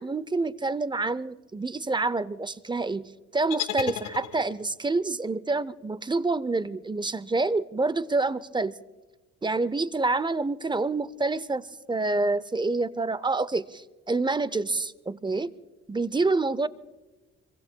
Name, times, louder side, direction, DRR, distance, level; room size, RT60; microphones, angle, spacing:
voice 1, 0.0-8.7 9.4-15.5 15.9-16.7, right 3 dB, 15° right, 18 dB, 0.5 m, -27 dB
sound 1, 3.5-4.8, left 12 dB, 85° left, 1.1 m, -34 dB
26.0 x 23.5 x 2.2 m, 1.2 s
cardioid pair, 90°, 30 cm